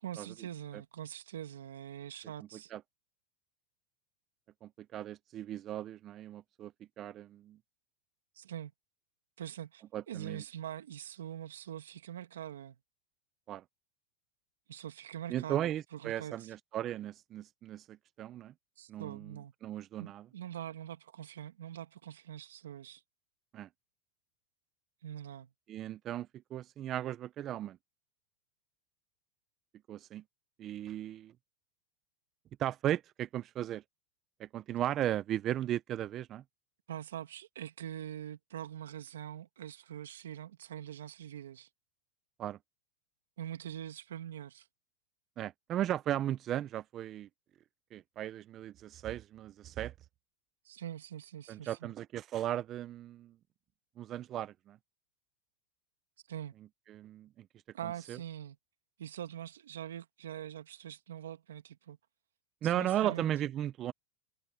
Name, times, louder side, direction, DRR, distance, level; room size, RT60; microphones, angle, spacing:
voice 1, 0.0-2.7 8.4-8.7 9.4-12.8 14.7-16.5 18.8-19.5 20.0-23.0 25.0-25.5 36.9-41.7 43.4-44.7 50.7-51.9 56.3-56.6 57.7-58.6 59.0-62.0 62.7-63.3, right 10 dB, 85° right, 2.2 m, -43 dB
voice 2, 4.6-6.7 7.0-7.6 9.9-10.4 13.5-13.6 15.3-18.5 18.9-20.3 23.5-23.7 25.7-27.8 29.9-30.2 30.6-31.3 32.6-33.8 34.4-36.4 42.4-42.6 45.4-47.3 47.9-49.9 51.5-53.3 54.0-54.8 56.9-57.5 57.8-58.2 62.6-63.9, right 12 dB, 40° right, 0.9 m, -36 dB
hypercardioid pair, 105°, 0 cm